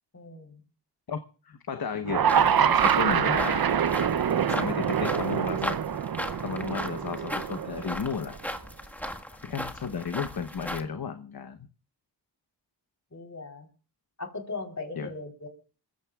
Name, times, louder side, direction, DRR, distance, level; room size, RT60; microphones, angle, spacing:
voice 1, 0.1-0.6 9.0-9.1 13.1-13.7 14.2-15.5, left 3 dB, 40° left, 3.7 m, -39 dB
voice 2, 1.1-3.7 4.5-5.8 6.4-8.4 9.4-11.6 15.0-15.1, left 6 dB, 55° left, 1.0 m, -34 dB
sound 1, 2.0-8.3, right 8 dB, 55° right, 0.6 m, -25 dB
sound 2, 2.3-10.8, equal, 5° left, 1.5 m, -37 dB
27.5 x 15.0 x 2.3 m
cardioid pair, 50°, 43 cm